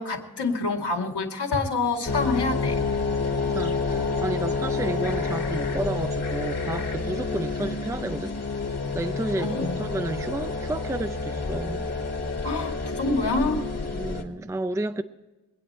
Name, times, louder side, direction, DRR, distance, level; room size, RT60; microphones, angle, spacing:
voice 1, 0.0-2.8 9.4-9.8 12.4-13.6, left 3 dB, 80° left, 2.4 m, -27 dB
sound 1, 2.0-14.2, left 3 dB, 40° left, 1.9 m, -29 dB
voice 2, 3.5-8.4 8.9-11.9 13.9-15.0, right 2 dB, 5° right, 0.5 m, -31 dB
23.5 x 9.2 x 4.4 m
wide cardioid pair, 125°, 41 cm